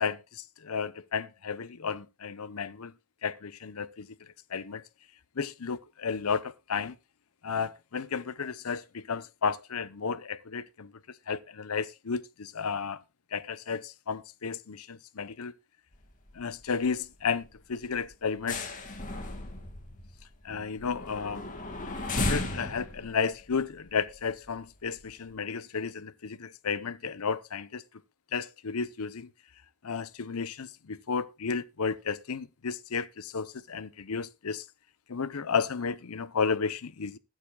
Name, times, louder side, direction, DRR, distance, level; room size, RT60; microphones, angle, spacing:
voice 1, 0.0-2.9 3.2-4.1 4.5-4.8 5.4-7.0 7.4-10.9 11.3-13.0 13.3-15.5 16.3-18.7 20.4-21.4 22.2-27.8 28.3-29.3 29.8-34.6 35.1-37.2, left 5 dB, 85° left, 0.8 m, -33 dB
sound 1, 15.9-16.4 16.7-16.9 17.3-17.5 17.8-24.5 25.0-25.1, left 2 dB, 35° left, 2.1 m, -35 dB
20.0 x 9.3 x 2.3 m
head